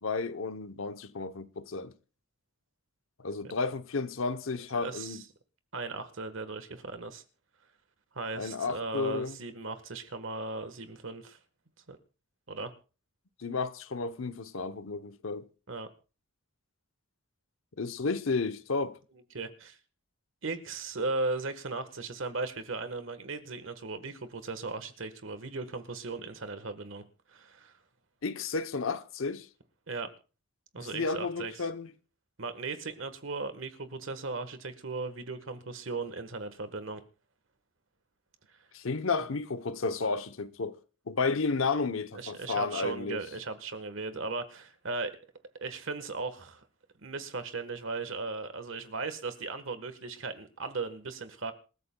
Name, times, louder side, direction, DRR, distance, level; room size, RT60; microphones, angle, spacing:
voice 1, 0.0-1.9 3.2-5.2 8.4-9.4 13.4-15.4 17.8-19.0 28.2-29.5 30.8-31.9 38.7-40.8 41.1-43.2, left 4 dB, 75° left, 0.8 m, -32 dB
voice 2, 4.8-5.2 5.7-7.2 8.1-11.4 11.9-12.0 12.5-12.7 15.7-15.9 19.3-19.8 20.4-27.7 29.9-30.1 30.7-31.7 32.4-37.0 42.1-45.2 45.6-46.6 47.0-51.5, right 3 dB, 70° right, 1.4 m, -37 dB
27.0 x 13.5 x 2.3 m
head